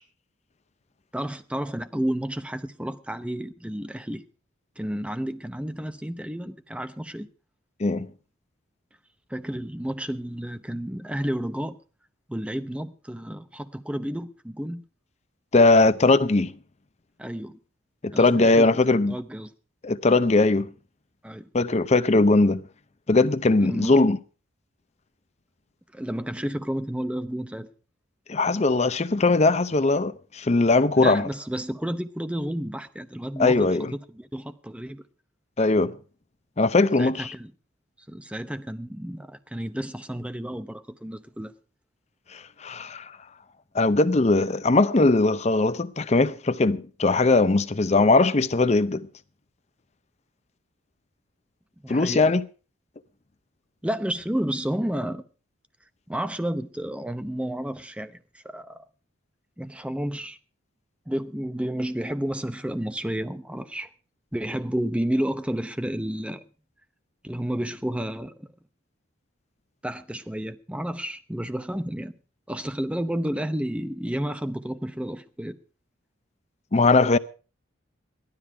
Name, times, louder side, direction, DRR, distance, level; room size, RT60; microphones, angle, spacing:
voice 1, 1.1-4.2 4.8-7.3 9.3-11.8 12.3-14.8 17.2-17.6 18.1-18.8 19.1-19.5 21.2-21.5 23.6-24.0 25.9-27.7 30.9-35.0 37.0-37.5 38.1-41.5 51.8-52.3 53.8-55.2 56.1-58.8 59.6-60.4 61.1-63.9 64.3-66.4 67.2-68.5 69.8-72.1 72.5-75.6, right 1 dB, 5° right, 0.7 m, -31 dB
voice 2, 15.5-16.5 18.0-19.2 19.8-20.7 21.5-22.6 23.1-24.2 28.3-31.3 33.4-33.9 35.6-35.9 36.6-37.3 42.3-43.1 43.7-49.1 51.9-52.4 76.7-77.2, left 3 dB, 35° left, 0.6 m, -20 dB
15.5 x 12.5 x 4.7 m
head